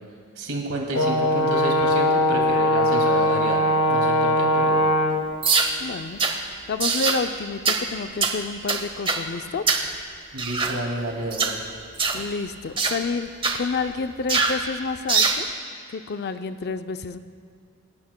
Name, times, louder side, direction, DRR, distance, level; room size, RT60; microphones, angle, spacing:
voice 1, 0.4-4.9 10.3-11.6, right 1 dB, 85° right, 0 dB, 2.4 m, -30 dB
Brass instrument, 0.9-5.3, left 1 dB, 90° left, 0.9 m, -20 dB
sound 1, 5.4-5.7 6.2-6.4 6.8-7.2 7.7-7.8 8.2-8.4 8.7-9.2 9.7-9.9 10.4-10.8 11.3-11.6 12.0-12.2 12.8-13.0 13.4-13.6 14.3-14.6 15.1-15.4, right 4 dB, 25° right, 0.9 m, -22 dB
voice 2, 5.8-9.7 12.1-15.5 15.9-17.2, left 4 dB, 50° left, 10 dB, 0.5 m, -30 dB
27.0 x 12.0 x 2.2 m, 2.4 s
head